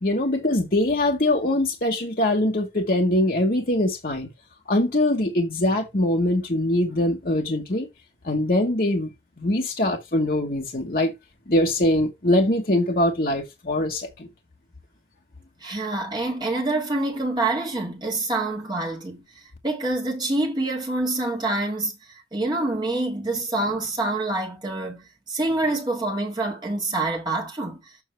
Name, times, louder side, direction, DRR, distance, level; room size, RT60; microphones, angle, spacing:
voice 1, 0.0-4.3 4.7-7.9 8.2-9.1 9.4-11.1 11.5-14.3, left 1 dB, 50° left, 1.2 m, -22 dB
voice 2, 15.6-19.2 19.6-27.9, right 2 dB, 25° right, 1.7 m, -26 dB
7.3 x 5.5 x 3.3 m
head